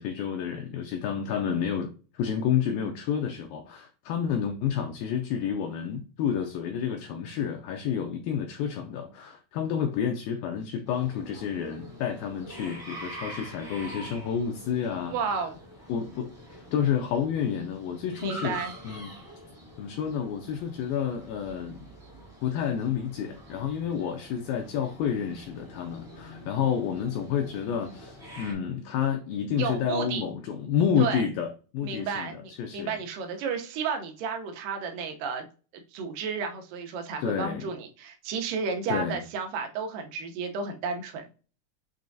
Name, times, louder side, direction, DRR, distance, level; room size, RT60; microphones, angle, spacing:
voice 1, 0.0-15.1 15.9-18.6 18.8-19.1 19.8-21.9 22.4-31.5 31.7-33.0 37.2-37.7 38.9-39.2, left 8 dB, 85° left, 2.1 m, -30 dB
sound 1, 10.8-28.5, right 1 dB, 15° right, 0.7 m, -45 dB
voice 2, 15.1-15.6 18.2-18.7 29.6-30.2 31.0-31.2 31.8-35.5 35.7-41.3, right 5 dB, 75° right, 2.0 m, -32 dB
6.8 x 3.0 x 2.5 m
omnidirectional pair, 4.7 m